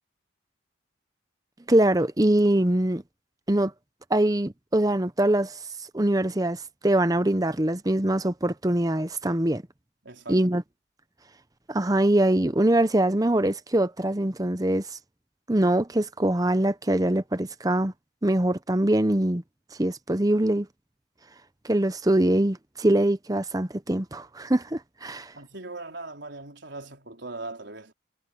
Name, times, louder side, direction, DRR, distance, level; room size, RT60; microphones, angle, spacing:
voice 1, 1.7-3.0 3.5-3.7 4.1-5.6 5.9-9.6 10.3-10.6 11.7-14.9 15.5-17.9 18.2-19.4 19.8-20.7 21.6-25.3, right 1 dB, 20° right, 0.8 m, -23 dB
voice 2, 10.0-10.5 25.3-27.9, right 2 dB, 65° right, 4.3 m, -39 dB
head